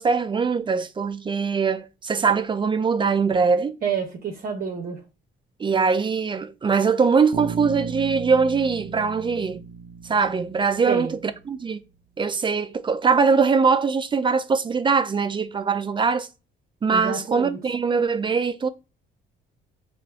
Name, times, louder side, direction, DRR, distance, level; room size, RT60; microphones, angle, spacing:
voice 1, 0.0-3.8 5.6-9.6 10.0-11.2 11.5-11.8 12.2-16.3 16.8-18.7, right 5 dB, 25° right, 0.3 m, -22 dB
voice 2, 3.8-5.0 10.9-11.2 16.9-17.6, right 6 dB, 50° right, 0.7 m, -28 dB
Bass guitar, 7.3-11.4, right 7 dB, 85° right, 0.5 m, -36 dB
5.5 x 2.5 x 2.3 m
cardioid pair, 90°, 20 cm